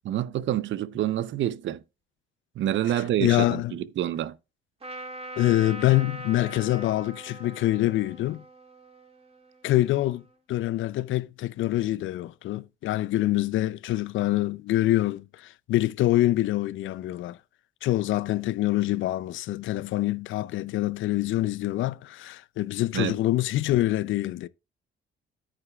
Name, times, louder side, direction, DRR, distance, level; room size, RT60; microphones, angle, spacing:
voice 1, 0.0-1.8 2.6-4.3 22.9-23.2, right 12 dB, 70° right, 0.7 m, -27 dB
voice 2, 2.9-3.8 5.4-8.4 9.6-10.2 10.5-17.4 17.8-24.5, left 15 dB, 75° left, 0.5 m, -25 dB
Trumpet, 4.8-10.3, right 1 dB, 30° right, 2.3 m, -42 dB
9.8 x 9.2 x 2.4 m
cardioid pair, 90°, 20 cm